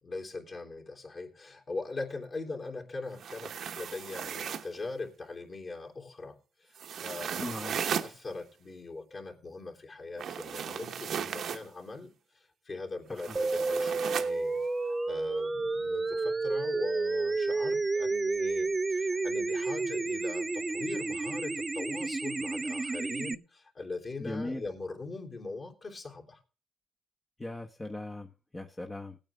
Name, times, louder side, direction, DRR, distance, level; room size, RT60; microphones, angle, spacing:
voice 1, 0.0-7.7 8.0-14.6 14.9-26.4, left 3 dB, 40° left, 0 dB, 3.3 m, -41 dB
sound 1, 3.1-4.8 6.8-8.1 10.2-11.7 13.2-14.3, right 8 dB, 65° right, 0.9 m, -36 dB
voice 2, 7.4-7.8 13.1-13.4 24.2-24.6 27.4-29.2, left 2 dB, 20° left, 2 dB, 1.0 m, -39 dB
sound 2, 13.4-23.4, right 3 dB, 25° right, 0.5 m, -31 dB
18.0 x 8.8 x 3.5 m, 0.33 s
cardioid pair, 90°, 0 cm